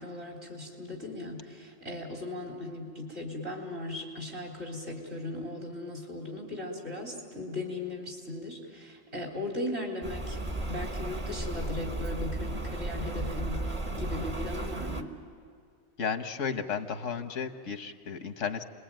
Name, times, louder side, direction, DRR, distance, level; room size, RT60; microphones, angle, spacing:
voice 1, 0.0-10.4 10.7-15.1, left 2 dB, 60° right, 0 dB, 4.2 m, -38 dB
Rain, 10.0-15.0, right 1 dB, 25° right, 1.2 m, -34 dB
voice 2, 16.0-18.6, left 6 dB, 90° left, 8 dB, 1.6 m, -33 dB
29.5 x 21.5 x 9.1 m, 2.2 s
omnidirectional pair, 1.3 m